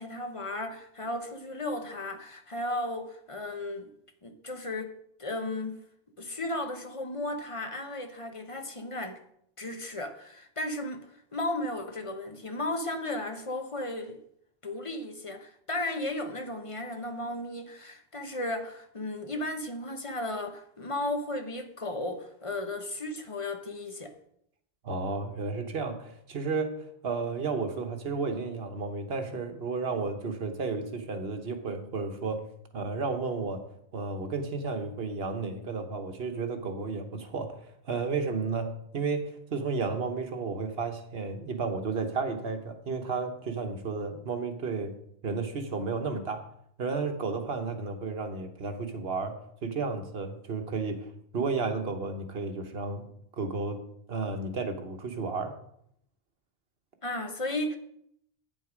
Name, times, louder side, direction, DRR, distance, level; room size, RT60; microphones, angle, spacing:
voice 1, 0.0-3.9 4.2-5.8 6.2-9.2 9.6-11.1 11.3-14.2 14.6-24.2 57.0-57.8, left 1 dB, 30° left, 1.0 m, -35 dB
voice 2, 24.8-32.4 32.7-33.6 33.9-44.9 45.2-46.4 46.8-53.1 53.4-53.8 54.1-55.5, right 4 dB, 70° right, 1.4 m, -32 dB
8.9 x 7.8 x 5.1 m
omnidirectional pair, 1.1 m